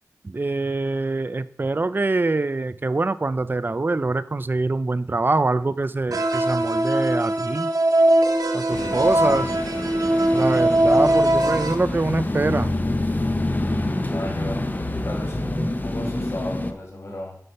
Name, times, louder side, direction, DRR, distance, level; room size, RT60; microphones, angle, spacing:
voice 1, 0.2-7.7 8.5-9.5 10.3-12.7, right 3 dB, 35° right, 14 dB, 0.4 m, -24 dB
sound 1, 6.1-11.7, right 1 dB, 90° right, 0.9 m, -20 dB
voice 2, 8.7-9.5 14.0-14.6 14.9-17.4, left 1 dB, 45° left, -2 dB, 2.4 m, -34 dB
sound 2, 8.7-16.7, left 1 dB, 30° left, 0.7 m, -27 dB
6.6 x 5.3 x 5.7 m, 0.62 s
wide cardioid pair, 70°, 6 cm